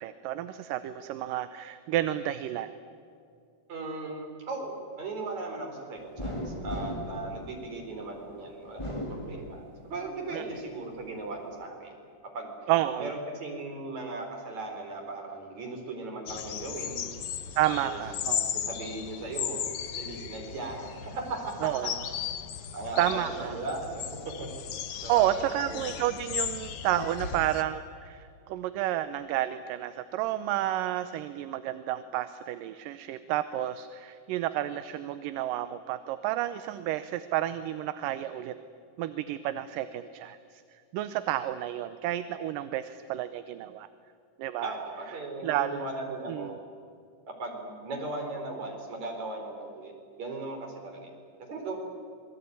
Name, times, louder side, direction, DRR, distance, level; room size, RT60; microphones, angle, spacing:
voice 1, 0.0-2.7 10.3-10.5 12.7-13.1 17.6-18.6 21.6-22.0 23.0-23.6 25.1-38.6 39.0-40.6 40.9-43.9 44.4-44.7 45.4-45.8 46.3-46.5, right 13 dB, 80° right, 12 dB, 2.4 m, -30 dB
voice 2, 3.7-12.0 12.3-12.5 13.0-17.0 17.7-18.0 18.5-19.7 20.0-21.9 22.7-24.0 24.4-24.5 25.0-25.9 44.6-46.6 47.4-49.9 50.2-51.2 51.5-51.7, right 2 dB, 55° right, 2 dB, 5.6 m, -37 dB
sound 1, 6.2-8.1 8.6-10.0 10.4-11.3, left 1 dB, 10° left, 2.6 m, -37 dB
sound 2, 16.3-27.6, left 8 dB, 60° left, 1.6 m, -36 dB
27.0 x 21.0 x 9.6 m, 2.4 s
omnidirectional pair, 3.9 m